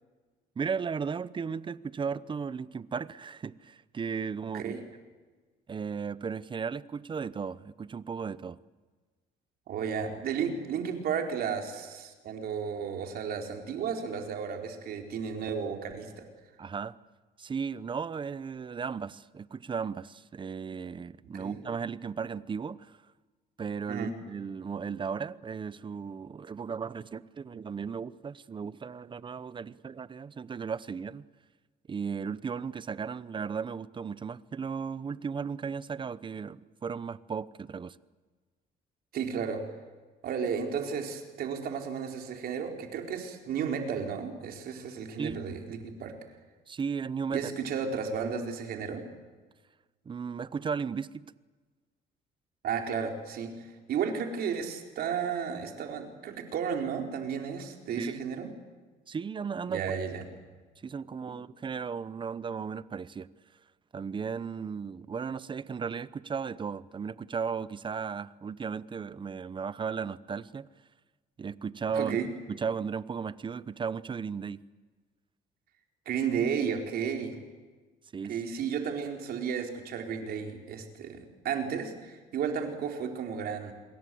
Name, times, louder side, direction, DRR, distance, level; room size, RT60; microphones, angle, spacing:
voice 1, 0.6-4.8 5.7-8.6 16.6-16.9 17.4-23.0 23.6-31.3 31.9-38.0 45.2-45.4 46.7-47.5 50.1-51.3 58.0-58.3 59.1-59.9 60.8-63.3 63.9-70.7 71.4-72.2 72.5-74.6 78.1-78.4, right 6 dB, 30° right, 0.9 m, -35 dB
voice 2, 9.7-16.2 21.4-21.6 23.9-24.1 39.1-39.6 40.2-46.1 47.3-49.1 52.6-58.5 59.7-60.2 71.9-72.3 76.1-77.4 78.3-83.7, right 7 dB, 65° right, 4.5 m, -33 dB
28.0 x 22.0 x 7.9 m
cardioid pair, 110°, 17 cm